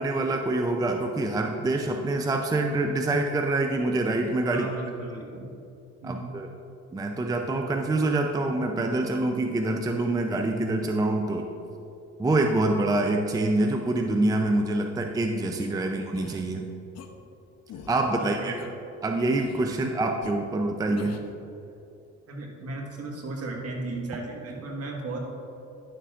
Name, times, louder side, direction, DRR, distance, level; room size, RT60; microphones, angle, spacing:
voice 1, 0.0-4.7 6.0-6.5 6.9-11.5 12.2-16.6 17.9-18.5 19.0-21.2, right 2 dB, 10° right, 3 dB, 0.5 m, -26 dB
voice 2, 4.5-5.5 6.0-6.3 18.2-18.7 19.9-20.0 22.3-25.2, right 2 dB, 55° right, 0 dB, 1.6 m, -35 dB
sound 1, 15.6-15.7 16.2-16.4 16.9-17.1 17.7-18.0 18.6-18.7 19.3-19.7 20.2-20.3 21.0-21.3, left 7 dB, 60° left, 0.8 m, -43 dB
10.5 x 6.7 x 2.5 m, 2.8 s
cardioid pair, 90°, 30 cm